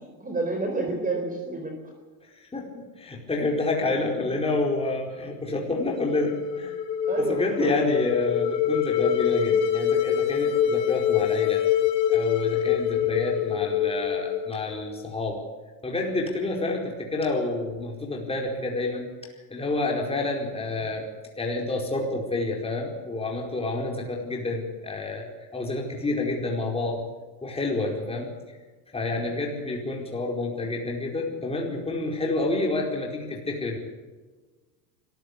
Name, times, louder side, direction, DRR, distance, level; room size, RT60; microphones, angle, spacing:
voice 1, 0.0-1.9 7.0-7.8 20.8-20.9 28.0-28.3, right 3 dB, 15° right, 3 dB, 4.3 m, -30 dB
voice 2, 2.3-2.7 3.0-6.7 7.3-11.6 12.1-15.4 15.8-19.1 19.5-21.1 21.4-27.0 27.4-28.3 28.9-33.8, left 2 dB, 10° left, -1 dB, 4.7 m, -28 dB
sound 1, 5.8-15.0, left 9 dB, 85° left, 2.8 m, -25 dB
24.5 x 15.0 x 8.4 m, 1.3 s
supercardioid pair, 125°, 49 cm